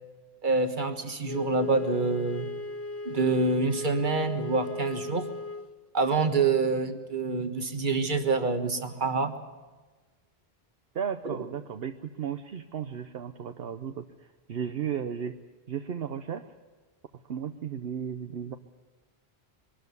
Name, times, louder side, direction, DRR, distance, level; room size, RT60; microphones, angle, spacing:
voice 1, 0.4-2.5 3.0-5.3 5.9-9.3 11.2-11.4, right 4 dB, 50° right, 7 dB, 1.6 m, -26 dB
Wind instrument woodwind instrument, 1.2-5.7, left 4 dB, 15° left, 0.9 m, -37 dB
voice 2, 10.9-15.4 15.7-16.4 17.3-18.6, right 8 dB, 70° right, 7 dB, 1.0 m, -34 dB
23.0 x 12.5 x 9.5 m, 1.3 s
omnidirectional pair, 1.1 m